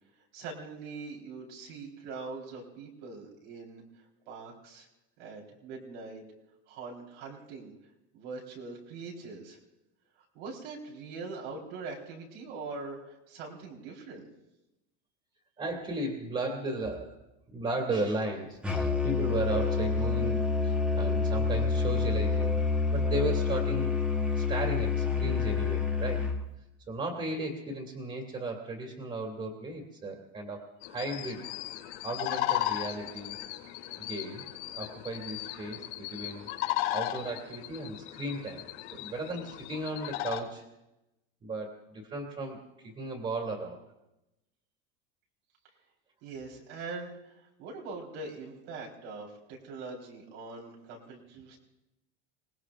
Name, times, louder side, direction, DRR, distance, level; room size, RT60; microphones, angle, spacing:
voice 1, 0.3-3.8 4.3-4.9 5.2-6.2 6.7-7.7 8.1-9.6 10.3-14.3 46.2-51.6, right 3 dB, 70° right, -1 dB, 4.1 m, -42 dB
voice 2, 15.6-17.2 17.5-22.6 22.9-23.9 24.3-26.2 26.9-31.5 32.0-33.4 34.0-34.5 34.7-36.5 36.9-38.6 38.9-40.6 41.4-43.8, right 2 dB, 20° right, 0 dB, 2.4 m, -35 dB
Musical instrument, 18.6-26.4, left 4 dB, 5° right, 1.3 m, -28 dB
sound 1, 30.8-40.4, left 14 dB, 90° left, 2.9 m, -36 dB
29.0 x 19.0 x 2.5 m, 0.92 s
cardioid pair, 175°, 33 cm